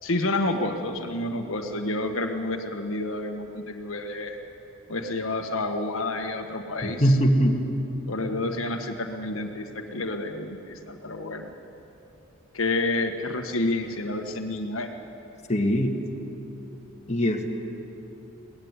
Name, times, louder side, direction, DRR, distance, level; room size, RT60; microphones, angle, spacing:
voice 1, 0.0-4.4 4.9-7.2 8.1-11.5 12.5-14.9, left 2 dB, 75° left, 4 dB, 1.6 m, -29 dB
voice 2, 6.8-7.6 15.5-16.0 17.1-17.6, equal, 30° left, 2 dB, 1.9 m, -22 dB
22.5 x 18.0 x 9.8 m, 2.9 s
head